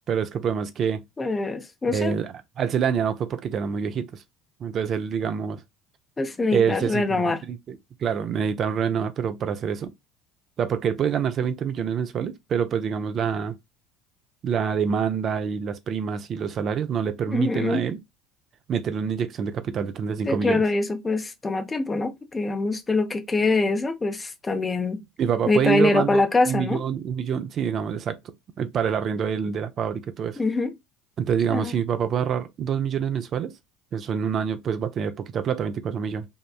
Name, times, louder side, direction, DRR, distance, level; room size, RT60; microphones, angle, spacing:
voice 1, 0.1-1.0 1.9-4.2 4.6-5.6 6.5-9.9 10.6-13.6 14.4-18.0 18.7-20.6 25.2-28.2 28.6-30.4 31.2-33.5 33.9-36.3, right 7 dB, 45° right, 0.4 m, -26 dB
voice 2, 1.2-2.1 6.2-7.4 17.3-17.8 20.2-25.0 25.5-26.8 30.4-30.7 31.5-31.7, left 3 dB, 20° left, 0.6 m, -24 dB
2.9 x 2.1 x 2.2 m
hypercardioid pair, 70°, 0 cm